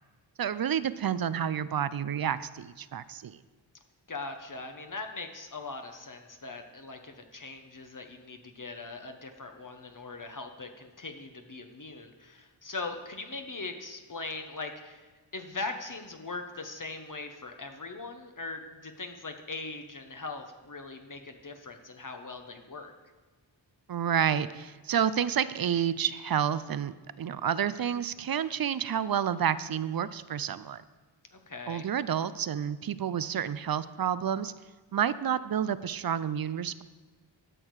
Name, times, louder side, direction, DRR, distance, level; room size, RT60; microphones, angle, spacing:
voice 1, 0.4-3.4 23.9-30.8 31.7-34.5 34.9-36.8, right 8 dB, 50° right, 16 dB, 0.5 m, -29 dB
voice 2, 4.1-15.1 15.3-22.9 31.3-31.9, left 3 dB, 40° left, 5 dB, 1.0 m, -40 dB
12.0 x 6.4 x 4.8 m, 1.3 s
cardioid pair, 40°, 47 cm